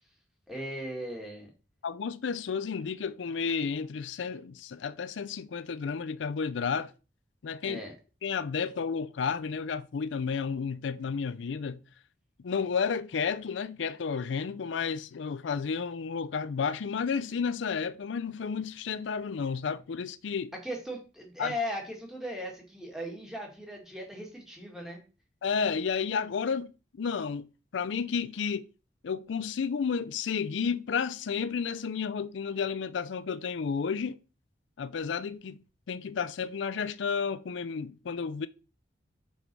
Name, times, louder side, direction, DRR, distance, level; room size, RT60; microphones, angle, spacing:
voice 1, 0.5-1.5 7.7-7.9 20.6-25.0, equal, 5° right, 2.1 m, -38 dB
voice 2, 1.8-6.9 7.4-7.8 8.2-11.8 12.4-20.5 21.4-21.5 25.4-28.7 29.0-34.2 34.8-35.6 35.9-38.5, left 6 dB, 80° left, 0.4 m, -32 dB
6.1 x 5.4 x 4.6 m
head